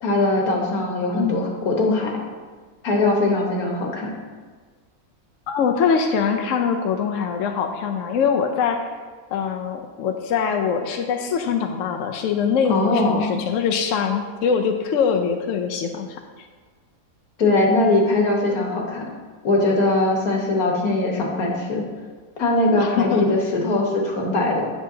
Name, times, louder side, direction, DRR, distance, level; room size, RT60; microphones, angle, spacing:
voice 1, 0.0-2.2 2.8-4.1 12.7-13.3 17.4-19.0 19.4-21.8 22.4-24.7, left 2 dB, 85° left, -1 dB, 1.7 m, -21 dB
voice 2, 5.5-8.9 9.3-16.5 22.8-23.2, left 6 dB, 65° left, 4 dB, 0.9 m, -23 dB
8.9 x 6.9 x 2.8 m, 1.5 s
omnidirectional pair, 1.5 m